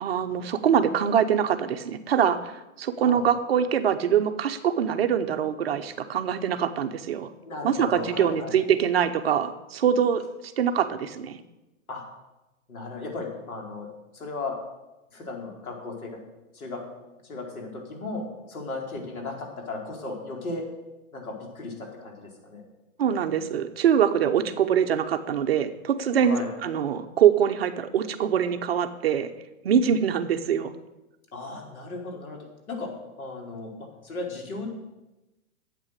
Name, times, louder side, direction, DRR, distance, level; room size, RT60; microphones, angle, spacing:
voice 1, 0.0-7.3 7.6-10.2 10.6-11.4 23.0-29.3 29.6-30.7, right 8 dB, 45° right, 9 dB, 0.8 m, -24 dB
voice 2, 7.4-8.5 11.9-12.0 12.7-13.9 14.1-14.5 15.1-16.1 16.5-20.6 21.1-22.6 26.2-26.5 31.3-32.4 32.7-32.9 33.2-34.7, left 3 dB, 90° left, 0 dB, 4.4 m, -36 dB
12.0 x 8.4 x 6.6 m, 1.0 s
hypercardioid pair, 170°, 42 cm